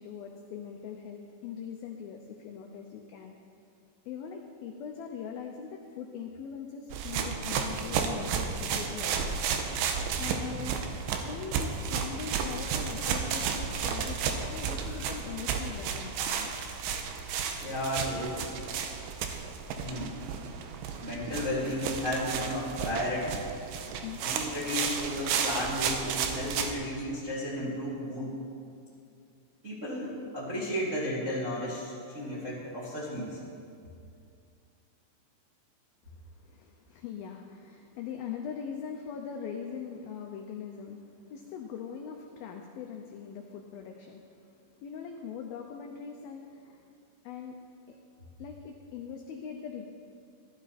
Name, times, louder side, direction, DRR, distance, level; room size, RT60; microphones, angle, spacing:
voice 1, 0.0-3.3 4.1-9.4 10.2-10.8 11.2-16.5 23.9-24.2 25.2-25.3 36.1-36.2 36.4-46.9 47.2-47.6 47.9-48.0 48.4-49.9, left 7 dB, 85° left, 2 dB, 2.1 m, -41 dB
sound 1, 6.9-26.7, right 6 dB, 80° right, 2.9 m, -33 dB
voice 2, 10.1-10.6 14.8-14.9 17.6-18.5 19.8-20.1 21.0-23.4 24.2-28.4 29.6-33.4, left 1 dB, 30° right, -8 dB, 1.6 m, -34 dB
14.5 x 12.5 x 4.2 m, 2.4 s
omnidirectional pair, 5.2 m